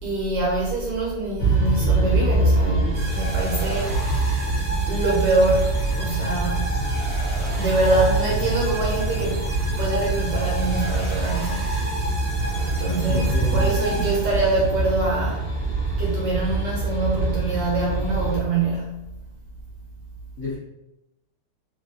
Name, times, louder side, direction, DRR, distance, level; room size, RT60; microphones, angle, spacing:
voice 1, 0.0-4.1 4.9-6.9 7.5-9.4 9.8-11.8 12.8-15.4 16.0-19.0, right 2 dB, 70° right, -3 dB, 1.1 m, -25 dB
sound 1, 1.4-18.4, right 2 dB, 20° left, 0.6 m, -24 dB
sound 2, 2.9-14.8, equal, 45° right, 0.9 m, -34 dB
voice 2, 13.0-14.1 20.4-20.6, left 3 dB, 60° left, -9 dB, 0.9 m, -32 dB
3.1 x 2.5 x 2.6 m, 0.93 s
omnidirectional pair, 2.3 m